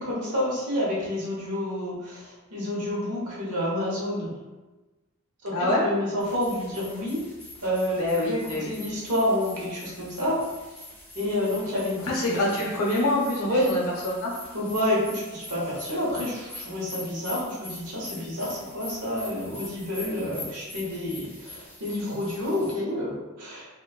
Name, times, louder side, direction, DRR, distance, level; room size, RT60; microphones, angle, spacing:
voice 1, 0.0-4.3 5.4-5.5 5.8-7.2 7.6-10.4 11.1-12.7 13.5-13.7 14.5-23.7, left 1 dB, 90° right, -5 dB, 0.9 m, -29 dB
voice 2, 5.5-5.8 8.0-8.7 12.0-14.3, left 1 dB, 70° left, -3 dB, 0.7 m, -26 dB
sound 1, 6.2-22.7, left 2 dB, 10° left, 0.5 m, -44 dB
2.9 x 2.1 x 2.2 m, 1.1 s
head